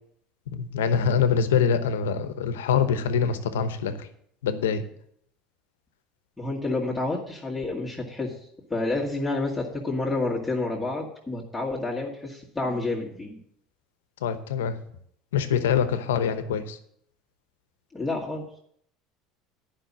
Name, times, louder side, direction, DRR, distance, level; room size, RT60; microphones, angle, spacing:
voice 1, 0.5-4.1 4.4-4.8 14.2-14.8 15.3-16.8, left 7 dB, 85° left, 10 dB, 0.9 m, -24 dB
voice 2, 6.4-8.3 8.7-13.4 17.9-18.5, left 2 dB, 10° left, -5 dB, 2.1 m, -29 dB
10.0 x 5.6 x 7.4 m, 0.68 s
hypercardioid pair, 85°, 0 cm